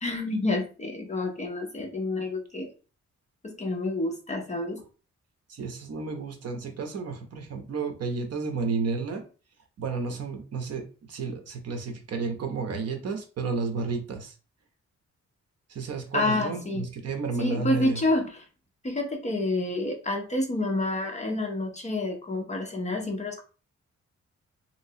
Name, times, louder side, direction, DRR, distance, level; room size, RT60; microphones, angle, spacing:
voice 1, 0.0-2.7 3.4-4.8 16.1-16.9 17.4-18.4 18.8-23.4, left 2 dB, 25° left, 2 dB, 0.6 m, -28 dB
voice 2, 5.5-9.2 9.8-10.8 11.1-14.3 15.7-18.0, right 4 dB, 60° right, 5 dB, 0.8 m, -32 dB
3.2 x 3.0 x 2.7 m, 0.35 s
wide cardioid pair, 160°, 29 cm